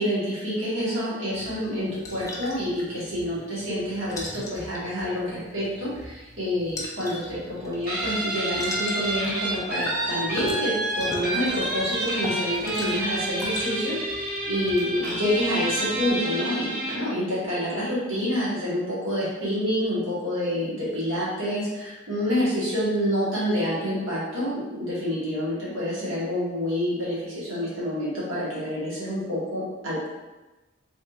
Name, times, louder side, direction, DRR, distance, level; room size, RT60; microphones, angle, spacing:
voice 1, 0.0-30.1, equal, 90° right, -8 dB, 1.3 m, -28 dB
sound 1, 1.3-16.2, left 1 dB, 15° left, 0.4 m, -40 dB
Guitar, 7.9-17.1, right 1 dB, 45° right, 0.8 m, -29 dB
3.4 x 2.8 x 2.4 m, 1.1 s
head